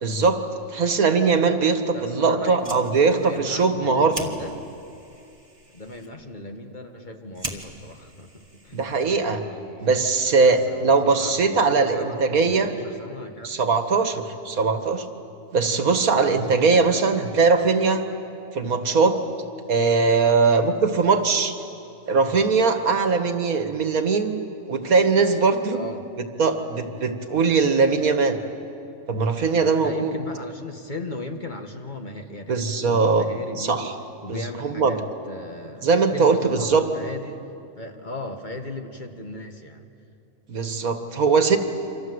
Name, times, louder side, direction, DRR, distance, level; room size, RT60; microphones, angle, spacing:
voice 1, 0.0-0.4 0.7-4.1 8.7-9.4 9.8-12.7 13.4-15.0 15.5-18.0 18.5-19.2 19.7-21.6 22.1-24.4 24.7-25.8 26.4-28.4 29.1-30.1 32.5-33.3 33.6-33.9 34.3-35.0 35.8-36.8 40.5-41.6, right 4 dB, 90° right, 7 dB, 2.1 m, -20 dB
voice 2, 1.9-4.6 5.7-8.8 9.1-10.1 10.4-13.6 25.7-26.0 29.6-33.9 34.2-37.5 37.8-39.9, left 2 dB, 35° left, 4 dB, 1.8 m, -37 dB
Fire, 2.4-9.3, right 2 dB, 25° right, 2.0 m, -41 dB
28.5 x 26.0 x 8.0 m, 2.7 s
omnidirectional pair, 1.5 m